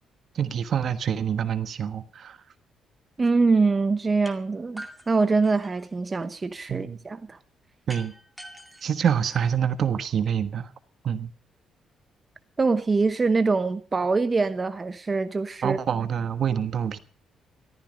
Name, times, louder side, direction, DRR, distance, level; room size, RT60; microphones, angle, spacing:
voice 1, 0.3-2.4 6.7-7.0 7.9-8.1 8.8-10.7 11.0-11.3 15.6-17.0, right 8 dB, 60° right, 1.3 m, -26 dB
voice 2, 3.2-7.4 12.6-15.8, right 4 dB, 30° right, 0.9 m, -24 dB
sound 1, 4.3-4.4 4.8-6.0 7.9-9.9, right 1 dB, 10° right, 2.2 m, -44 dB
14.5 x 14.0 x 5.2 m
cardioid pair, 90°, 0 cm